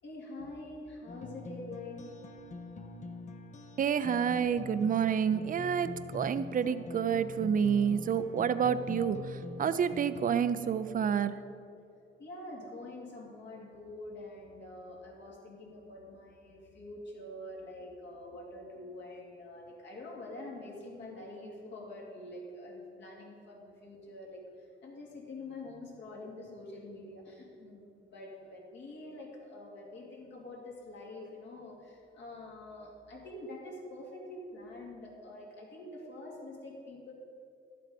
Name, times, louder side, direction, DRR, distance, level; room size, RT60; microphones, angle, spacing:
voice 1, 0.0-2.4 12.2-37.1, left 2 dB, 65° left, -2 dB, 2.7 m, -46 dB
sound 1, 1.1-11.1, left 3 dB, 35° left, 0.8 m, -44 dB
voice 2, 3.8-11.4, right 7 dB, 45° right, 12 dB, 0.5 m, -29 dB
12.0 x 7.6 x 5.1 m, 2.5 s
cardioid pair, 90°, 20 cm